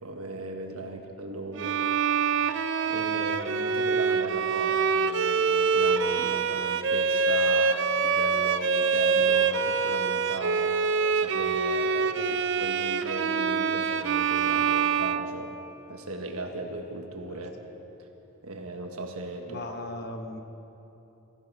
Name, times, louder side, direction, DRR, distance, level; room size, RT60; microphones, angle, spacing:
voice 1, 0.0-1.8 2.2-2.3 2.9-10.8 11.1-12.1 12.6-15.6 15.9-17.5 18.0-18.1 18.4-19.6, right 2 dB, 80° right, 4 dB, 1.4 m, -37 dB
Bowed string instrument, 1.6-15.9, right 5 dB, 55° right, 0.4 m, -25 dB
voice 2, 19.5-20.4, left 1 dB, 45° left, 5 dB, 1.0 m, -39 dB
15.5 x 14.5 x 4.7 m, 3.0 s
head